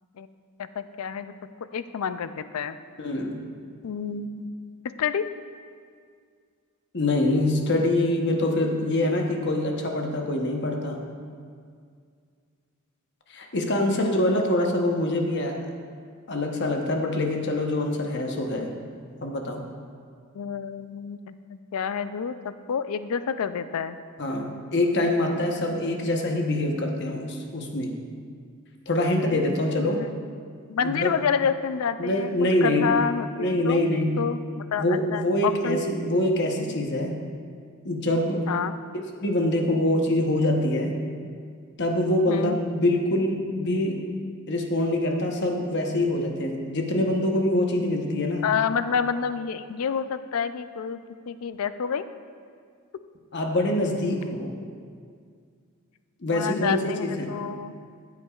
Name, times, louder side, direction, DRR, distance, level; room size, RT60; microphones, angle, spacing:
voice 1, 0.6-1.3 1.7-2.8 3.8-4.5 5.0-5.2 8.8-8.9 13.8-14.2 20.3-24.0 25.6-26.1 29.8-30.1 30.7-32.3 32.6-33.8 34.2-35.8 38.5-38.7 42.3-42.6 48.4-51.0 51.3-52.0 56.3-57.7, left 6 dB, 75° left, 12 dB, 0.4 m, -29 dB
voice 2, 3.0-3.4 6.9-11.0 13.3-15.6 16.3-18.7 19.2-19.6 24.2-27.9 28.9-30.0 30.8-31.1 32.0-33.0 33.4-34.3 34.8-37.1 37.8-38.5 39.2-40.9 41.8-44.1 44.5-48.5 53.3-54.5 56.2-57.3, left 1 dB, 50° left, 2 dB, 1.0 m, -25 dB
14.5 x 8.3 x 2.4 m, 2.1 s
head